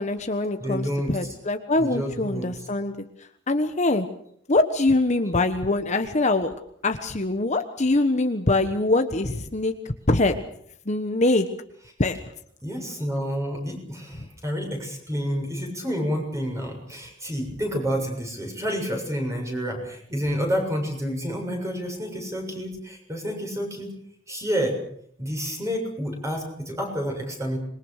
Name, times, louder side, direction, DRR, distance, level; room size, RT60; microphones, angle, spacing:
voice 1, 0.0-3.0 3.5-4.1 4.5-6.5 6.8-10.3 10.9-11.5 12.0-12.2 14.2-14.3, left 2 dB, 35° left, 7 dB, 1.2 m, -23 dB
voice 2, 0.6-1.1 1.8-2.5 12.6-23.9 24.3-24.8 25.2-27.6, equal, 15° right, 2 dB, 7.0 m, -29 dB
26.5 x 22.0 x 6.6 m, 0.68 s
head